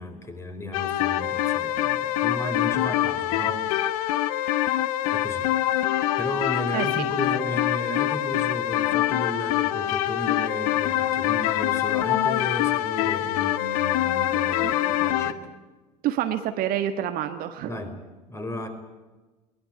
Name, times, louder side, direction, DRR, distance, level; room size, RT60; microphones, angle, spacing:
voice 1, 0.0-3.8 5.1-5.5 6.2-15.5 17.6-17.9 18.3-18.7, left 1 dB, 15° left, 6 dB, 4.8 m, -34 dB
sound 1, 0.7-15.3, left 13 dB, 55° left, 1.2 m, -25 dB
voice 2, 6.7-7.0 14.6-14.7 16.0-17.7, right 11 dB, 45° right, 8 dB, 1.5 m, -27 dB
22.5 x 19.5 x 9.4 m, 1.2 s
figure-of-eight pair, 75°, 21 cm